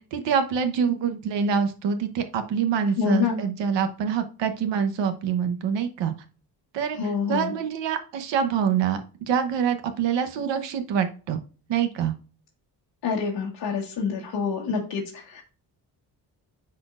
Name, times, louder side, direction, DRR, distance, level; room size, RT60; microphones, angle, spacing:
voice 1, 0.1-6.1 6.7-7.0 7.3-11.4 11.7-12.1, right 7 dB, 85° right, 7 dB, 1.0 m, -25 dB
voice 2, 3.0-3.4 6.9-7.5 13.0-15.4, left 5 dB, 60° left, -3 dB, 1.5 m, -27 dB
10.5 x 4.4 x 2.5 m, 0.36 s
cardioid pair, 135°, 42 cm